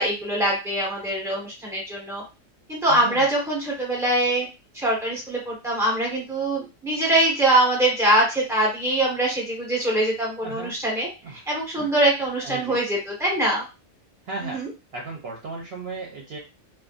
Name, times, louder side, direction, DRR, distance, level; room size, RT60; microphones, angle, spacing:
voice 1, 0.0-2.2 2.7-4.5 4.7-13.6 14.4-14.7, right 1 dB, ahead, -3 dB, 1.0 m, -23 dB
voice 2, 2.9-3.3 10.4-10.8 11.2-11.4 11.8-11.9 12.4-12.8 14.2-14.6 14.9-16.4, right 3 dB, 60° right, -1 dB, 0.8 m, -35 dB
2.5 x 2.3 x 2.4 m, 0.28 s
omnidirectional pair, 1.3 m